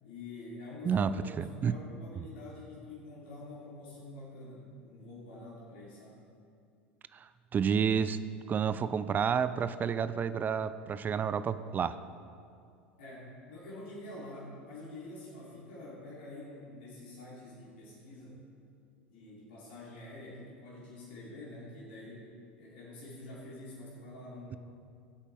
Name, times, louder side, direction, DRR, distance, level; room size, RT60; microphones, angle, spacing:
voice 1, 0.0-1.4 1.6-6.2 13.0-18.4 19.1-22.3 22.6-24.6, left 2 dB, 65° left, -6 dB, 3.2 m, -47 dB
voice 2, 0.8-1.8 7.1-8.2 8.5-12.0, right 7 dB, 30° right, 14 dB, 0.5 m, -30 dB
18.0 x 8.2 x 3.5 m, 2.4 s
figure-of-eight pair, 75°, 6 cm